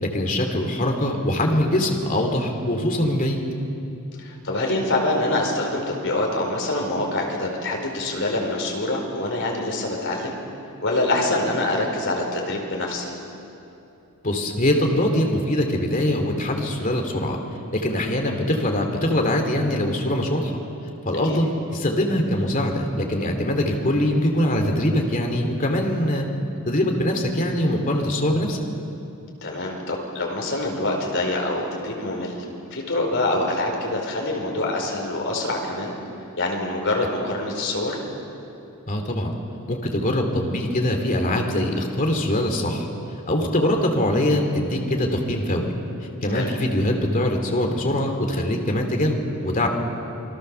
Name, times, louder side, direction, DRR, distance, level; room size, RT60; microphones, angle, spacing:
voice 1, 0.0-3.4 14.2-17.4 17.7-20.5 21.0-26.3 26.7-28.6 38.9-39.3 39.7-42.9 43.3-45.7 46.2-49.7, left 1 dB, 40° left, 3 dB, 2.8 m, -23 dB
voice 2, 4.2-10.4 10.8-13.1 21.2-21.4 29.4-32.4 32.7-35.9 36.4-38.0 46.3-46.5, left 2 dB, 60° left, 1 dB, 4.8 m, -25 dB
28.0 x 22.5 x 6.9 m, 2.8 s
head